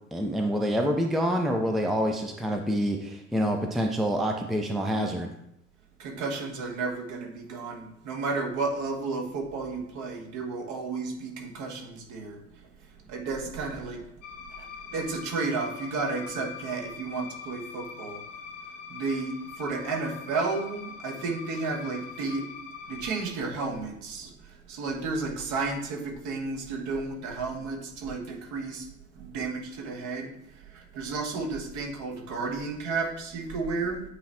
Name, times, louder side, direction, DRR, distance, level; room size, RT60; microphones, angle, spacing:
voice 1, 0.1-5.3, equal, ahead, 3 dB, 0.6 m, -27 dB
voice 2, 6.0-14.0 14.4-18.2 18.9-22.5 22.9-28.9 29.1-34.0, right 3 dB, 50° right, 1 dB, 1.5 m, -32 dB
sound 1, 14.2-23.2, left 6 dB, 75° left, 0.9 m, -43 dB
8.3 x 3.1 x 4.3 m, 0.77 s
figure-of-eight pair, 65°, 38 cm